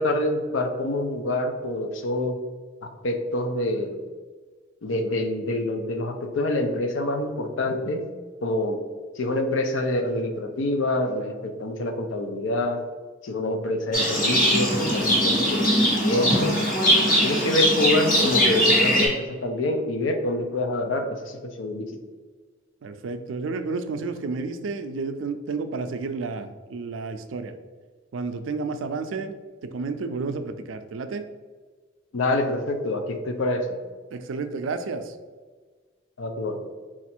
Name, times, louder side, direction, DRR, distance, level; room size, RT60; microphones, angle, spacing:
voice 1, 0.0-2.4 2.8-4.0 4.8-8.0 8.4-8.8 9.2-12.8 13.2-16.6 17.2-21.9 32.1-33.8 36.2-36.6, left 1 dB, 75° left, 6 dB, 0.5 m, -26 dB
Livestock farm animals working animals, 13.9-19.1, equal, 45° left, 1.1 m, -21 dB
voice 2, 22.8-27.5 28.1-29.3 29.6-31.3 34.1-35.2, right 4 dB, 80° right, 9 dB, 0.4 m, -31 dB
4.3 x 2.4 x 4.3 m, 1.4 s
head